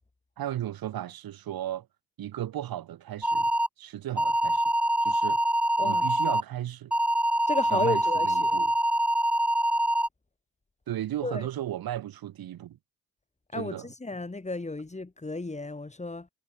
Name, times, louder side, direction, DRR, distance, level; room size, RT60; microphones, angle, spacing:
voice 1, 0.4-1.9 2.2-3.5 3.8-4.6 5.0-5.4 5.8-6.9 7.7-8.7 10.9-12.8 13.5-13.9, right 12 dB, 70° right, 1.3 m, -35 dB
sound 1, 3.2-3.7 4.2-6.4 6.9-10.1, right 1 dB, 5° right, 0.7 m, -25 dB
voice 2, 5.8-6.1 7.5-8.6 11.2-11.5 13.5-16.3, left 2 dB, 20° left, 4.0 m, -33 dB
cardioid pair, 90°, 37 cm